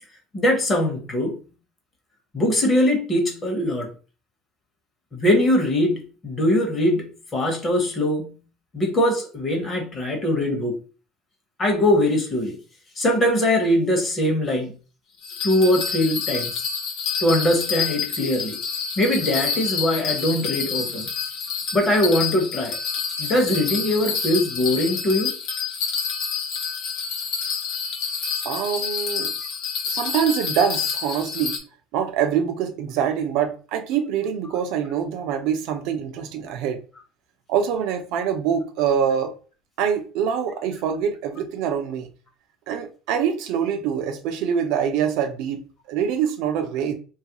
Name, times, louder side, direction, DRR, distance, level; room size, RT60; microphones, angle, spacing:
voice 1, 0.3-1.4 2.3-3.9 5.1-8.4 8.7-10.8 11.6-12.6 13.0-14.7 15.4-16.6 17.2-18.6 19.0-21.1 21.7-22.8 23.2-25.3, left 1 dB, 25° left, 0.8 m, -21 dB
Bell, 15.2-31.6, left 6 dB, 65° left, 0.6 m, -28 dB
voice 2, 28.4-29.3 29.9-31.6 31.9-36.8 37.5-39.3 39.8-42.1 42.7-46.9, right 8 dB, 65° right, 0.5 m, -24 dB
3.0 x 2.3 x 2.9 m
cardioid pair, 160°, 0 cm